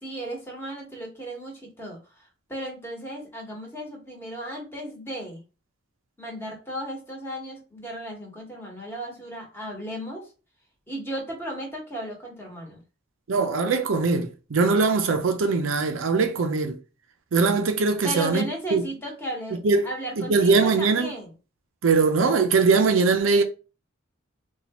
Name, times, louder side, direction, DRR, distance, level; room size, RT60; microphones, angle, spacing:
voice 1, 0.0-2.0 2.5-5.4 6.2-10.3 10.9-12.8 18.0-19.6 19.8-21.3, right 1 dB, 10° left, 1.2 m, -35 dB
voice 2, 13.3-16.8 17.3-18.8 19.5-19.9 20.2-21.1 21.8-23.4, right 4 dB, 65° right, 0.5 m, -21 dB
4.2 x 2.3 x 2.9 m
head